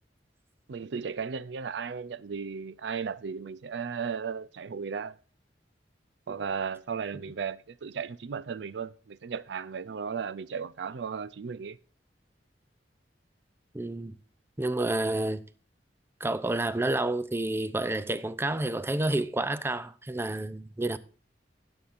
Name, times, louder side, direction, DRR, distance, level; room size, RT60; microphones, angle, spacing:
voice 1, 0.7-5.2 6.3-11.8, right 6 dB, 75° right, 0.5 m, -35 dB
voice 2, 13.7-14.1 14.6-15.4 16.2-21.0, right 2 dB, 15° right, 0.5 m, -29 dB
19.5 x 7.1 x 2.5 m
head